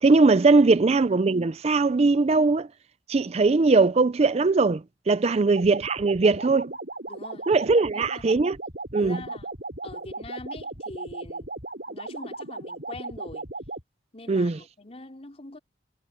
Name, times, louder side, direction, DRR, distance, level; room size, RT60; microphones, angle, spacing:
voice 1, 0.0-2.7 3.1-6.7 7.5-8.6 8.9-9.2 14.3-14.6, right 3 dB, 35° right, 0.4 m, -20 dB
voice 2, 5.2-5.5 7.1-7.5 7.7-8.2 9.0-9.5 9.8-11.5 11.9-13.5 14.1-15.6, left 2 dB, 35° left, 4.8 m, -43 dB
sound 1, 5.5-13.8, right 2 dB, 55° right, 7.4 m, -37 dB
head